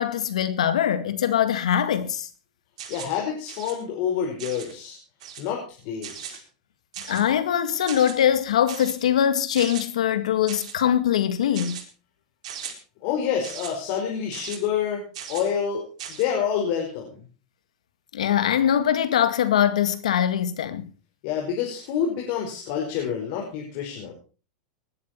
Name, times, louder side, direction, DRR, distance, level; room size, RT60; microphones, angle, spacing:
voice 1, 0.0-2.3 7.1-11.8 18.1-20.9, left 10 dB, 90° left, 1.8 m, -22 dB
sound 1, 2.8-3.2 3.5-3.7 4.4-4.7 5.2-5.5 6.0-6.4 6.9-7.3 7.9-8.1 8.7-8.9 9.5-9.8 10.5-10.8 11.5-11.8 12.4-12.7 13.4-13.7 14.3-14.6 15.1-15.5 16.0-16.2, right 9 dB, 75° right, 4.3 m, -38 dB
voice 2, 2.9-5.0 5.4-6.4 13.0-17.2 21.2-24.1, left 8 dB, 60° left, 5.2 m, -28 dB
19.5 x 11.5 x 4.5 m
supercardioid pair, 125°, 4 cm